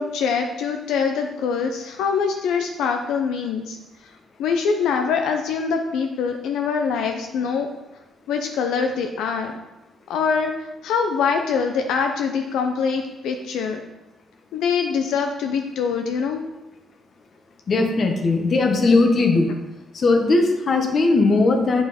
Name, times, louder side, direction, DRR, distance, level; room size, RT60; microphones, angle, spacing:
voice 1, 0.0-3.8 4.0-4.1 4.4-7.7 8.3-9.5 10.1-13.8 14.5-16.4, left 6 dB, 85° left, 4 dB, 0.6 m, -24 dB
voice 2, 17.7-19.5 19.9-21.8, left 3 dB, 45° left, 4 dB, 1.2 m, -18 dB
8.5 x 5.0 x 4.2 m, 1.0 s
cardioid pair, 90°, 0 cm